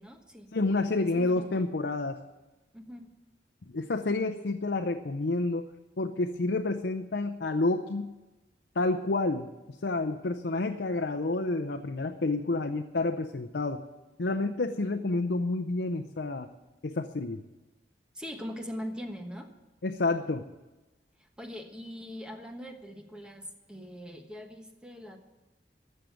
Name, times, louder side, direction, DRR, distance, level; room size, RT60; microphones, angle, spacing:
voice 1, 0.0-0.5 0.9-1.7 2.7-3.1 18.1-19.5 21.2-25.2, equal, 5° right, 4 dB, 1.2 m, -42 dB
voice 2, 0.5-2.2 3.7-5.7 6.0-8.1 8.8-9.5 9.8-13.8 14.2-16.5 16.8-17.4 19.8-20.5, left 2 dB, 65° left, 5 dB, 0.6 m, -29 dB
14.5 x 6.5 x 9.1 m, 1.1 s
head